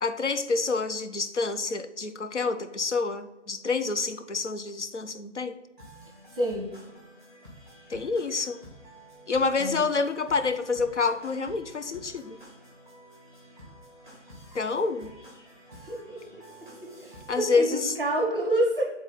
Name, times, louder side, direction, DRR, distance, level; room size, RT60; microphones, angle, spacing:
voice 1, 0.0-5.6 7.9-8.6 9.3-12.4 14.5-15.1 17.3-17.9, left 4 dB, 70° left, 9 dB, 0.7 m, -28 dB
sound 1, 5.8-17.6, equal, 15° left, 1.4 m, -50 dB
voice 2, 6.4-6.7 9.6-9.9 15.8-16.2 16.6-18.9, right 1 dB, 20° right, 0 dB, 0.8 m, -28 dB
6.9 x 4.0 x 3.9 m, 1.1 s
figure-of-eight pair, 150°, 36 cm